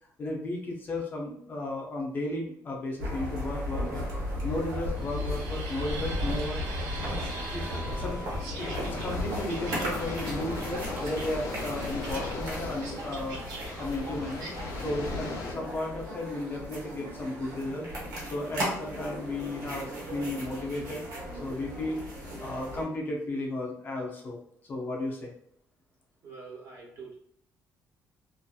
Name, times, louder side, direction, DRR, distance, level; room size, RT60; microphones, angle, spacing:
voice 1, 0.2-4.0 4.4-6.9 7.2-14.5 14.7-17.9 18.3-21.0 21.4-22.0 22.4-24.4 24.7-25.3, left 1 dB, 30° left, -1 dB, 0.5 m, -34 dB
sound 1, 3.0-22.8, left 1 dB, 70° right, 1.1 m, -35 dB
sound 2, 4.9-14.7, right 3 dB, 85° right, 0.7 m, -43 dB
voice 2, 7.8-8.2 26.2-27.1, right 4 dB, 40° right, -2 dB, 0.9 m, -45 dB
sound 3, 8.6-15.5, left 2 dB, 80° left, 0.7 m, -38 dB
2.6 x 2.4 x 2.3 m, 0.68 s
cardioid pair, 170°, 6 cm